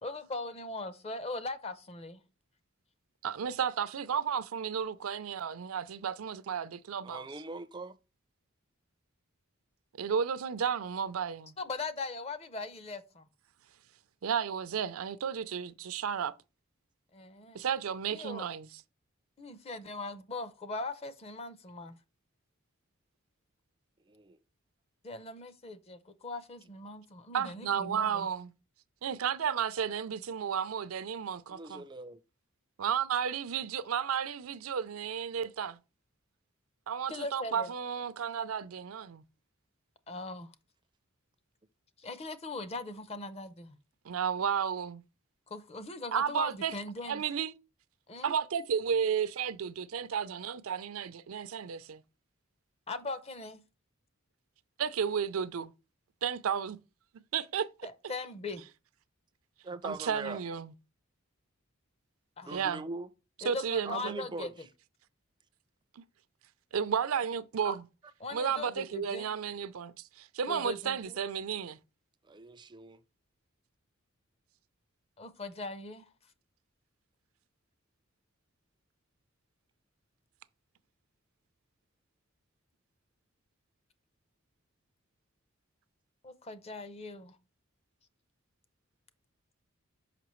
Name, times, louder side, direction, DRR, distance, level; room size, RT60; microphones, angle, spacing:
voice 1, 0.0-2.2 11.6-13.3 17.1-17.6 18.1-18.5 19.4-22.0 25.0-28.3 37.1-37.7 40.1-40.5 42.0-43.8 45.5-47.2 48.1-48.3 52.9-53.6 57.8-58.6 60.3-60.4 62.4-62.6 63.4-64.5 68.2-69.4 70.5-71.2 75.2-76.1 86.2-87.4, left 3 dB, 30° left, 0.6 m, -40 dB
voice 2, 3.2-7.2 10.0-11.5 14.2-16.3 17.5-18.7 27.3-28.5 29.0-31.8 32.8-35.8 36.9-39.2 44.0-45.0 46.1-46.7 47.1-47.5 48.2-52.0 54.8-55.7 56.2-56.8 57.3-57.7 59.8-60.7 62.5-62.9 63.4-64.2 66.0-66.1 66.7-67.8 68.3-71.8, right 7 dB, 75° right, 0.4 m, -33 dB
voice 3, 7.0-8.0 24.1-24.4 31.5-32.2 59.6-60.4 62.4-63.1 63.9-64.7 67.6-67.8 72.2-73.0, right 3 dB, 20° right, 0.4 m, -42 dB
5.8 x 5.5 x 3.0 m
head